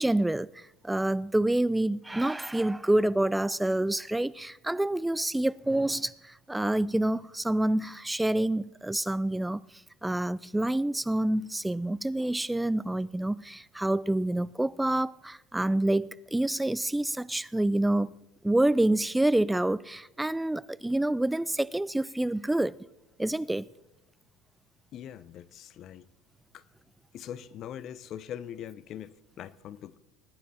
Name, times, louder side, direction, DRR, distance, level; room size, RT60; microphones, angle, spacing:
voice 1, 0.0-9.6 10.0-18.1 18.4-22.8 23.2-23.7, right 1 dB, 5° right, 0.3 m, -27 dB
voice 2, 24.9-26.1 26.5-26.6 27.1-30.0, left 10 dB, 50° left, 0.6 m, -42 dB
19.5 x 9.7 x 4.3 m
hypercardioid pair, 85°, 0 cm